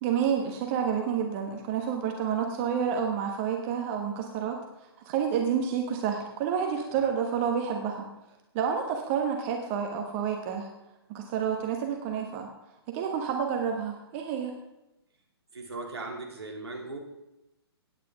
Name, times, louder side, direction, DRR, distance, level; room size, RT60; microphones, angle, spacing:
voice 1, 0.0-8.1 8.5-10.7 11.1-12.5 12.9-14.5, right 7 dB, 30° right, 3 dB, 1.2 m, -29 dB
voice 2, 15.5-17.0, right 2 dB, 70° right, 0 dB, 2.9 m, -38 dB
16.5 x 9.6 x 3.6 m, 0.92 s
figure-of-eight pair, 125°, 14 cm